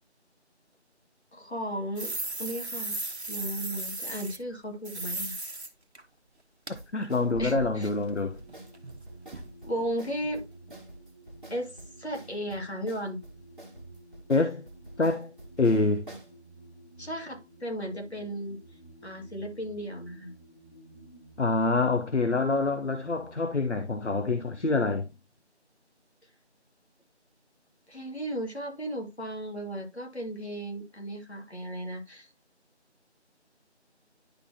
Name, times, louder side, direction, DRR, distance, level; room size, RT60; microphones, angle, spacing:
voice 1, 1.3-3.0 3.3-5.4 7.4-7.9 9.6-10.5 11.5-13.2 17.0-18.6 19.0-20.3 27.9-32.3, equal, 70° left, 2.4 m, -35 dB
sound 1, 2.0-4.4 4.8-5.7 5.9-6.0 6.7-6.8 7.0-9.0 9.3-9.5 9.8-9.9 10.2-10.4 10.7-10.8, right 2 dB, 70° right, 1.2 m, -36 dB
sound 2, 6.7-16.3, right 1 dB, 45° right, 1.8 m, -49 dB
voice 2, 6.9-8.4 14.3-14.6 15.0-15.3 15.6-16.1 21.4-25.1, left 3 dB, 85° left, 0.9 m, -26 dB
sound 3, 7.1-25.1, right 1 dB, 25° left, 1.8 m, -53 dB
10.5 x 3.9 x 2.8 m
figure-of-eight pair, 175°, 34 cm